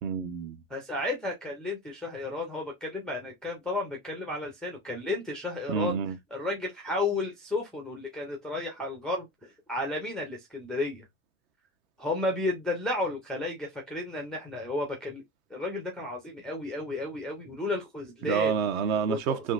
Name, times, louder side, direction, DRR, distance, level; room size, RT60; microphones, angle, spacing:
voice 1, 0.0-0.6 5.7-6.2 18.2-19.5, right 7 dB, 65° right, 0.9 m, -28 dB
voice 2, 0.7-6.0 6.3-11.1 12.0-15.2 15.5-18.6 19.1-19.4, left 2 dB, ahead, 0.3 m, -33 dB
3.7 x 2.6 x 2.4 m
supercardioid pair, 130°, 45 cm